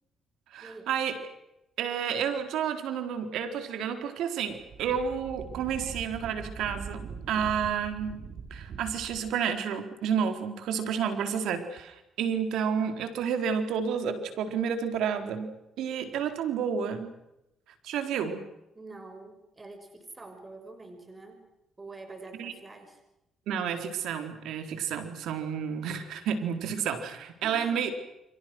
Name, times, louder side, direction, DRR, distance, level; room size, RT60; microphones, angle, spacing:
voice 1, 0.5-1.1 1.8-17.2 17.8-18.5 22.4-22.5 23.5-27.9, right 7 dB, 85° right, 8 dB, 4.3 m, -30 dB
Wind, 4.5-9.3, right 6 dB, 65° right, 4.6 m, -42 dB
voice 2, 18.7-21.4 21.8-23.0 27.4-27.9, right 2 dB, 25° right, 6 dB, 6.1 m, -46 dB
30.0 x 25.0 x 6.4 m, 0.87 s
cardioid pair, 90°, 0 cm